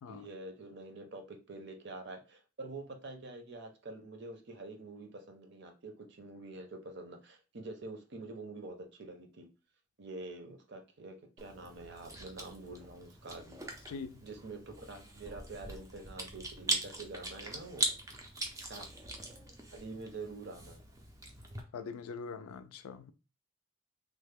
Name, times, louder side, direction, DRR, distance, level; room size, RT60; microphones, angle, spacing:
voice 1, 0.1-9.5 10.0-13.6 14.2-17.9 18.6-18.9 19.7-20.8, right 2 dB, 50° right, 0.6 m, -46 dB
Chewing mastication, 11.4-21.6, right 2 dB, 15° right, 0.4 m, -41 dB
voice 2, 13.9-14.2 21.7-23.1, left 5 dB, 80° left, 0.4 m, -43 dB
3.1 x 2.1 x 3.4 m
head